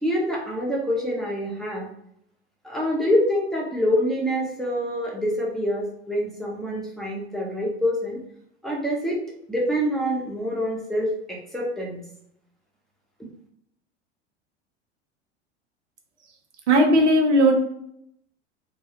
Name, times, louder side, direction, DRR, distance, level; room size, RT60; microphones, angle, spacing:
voice 1, 0.0-1.9 2.6-8.2 8.6-9.2 9.5-12.0, equal, ahead, -4 dB, 0.7 m, -26 dB
voice 2, 16.7-17.5, right 1 dB, 85° right, 1 dB, 0.6 m, -17 dB
2.3 x 2.1 x 2.8 m, 0.72 s
hypercardioid pair, 85°, 34 cm